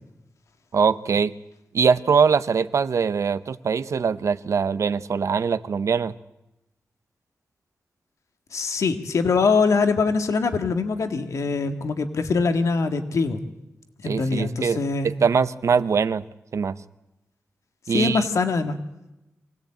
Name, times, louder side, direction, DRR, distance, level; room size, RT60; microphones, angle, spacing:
voice 1, 0.7-1.4 1.7-6.1 14.0-16.2 16.5-16.8 17.9-18.3, right 6 dB, 75° right, 14 dB, 0.8 m, -22 dB
voice 2, 8.5-13.4 14.0-15.1 17.9-18.8, left 4 dB, 85° left, 7 dB, 1.8 m, -23 dB
24.5 x 17.5 x 8.8 m, 0.94 s
wide cardioid pair, 75°, 5 cm